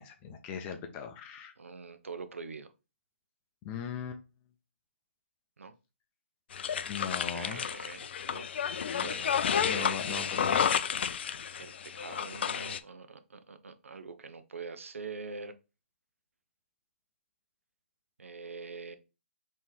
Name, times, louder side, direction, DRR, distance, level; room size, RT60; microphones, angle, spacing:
voice 1, 0.0-1.5 3.6-4.2 6.9-7.6 9.7-10.7, left 7 dB, 20° left, 0.6 m, -39 dB
voice 2, 1.6-2.7 5.6-5.7 7.3-8.5 8.9-10.3 11.6-15.6 18.2-19.0, right 4 dB, 85° right, 0.6 m, -44 dB
sound 1, 6.5-12.8, left 8 dB, 55° left, 0.4 m, -31 dB
3.5 x 3.1 x 4.4 m
hypercardioid pair, 150°, 7 cm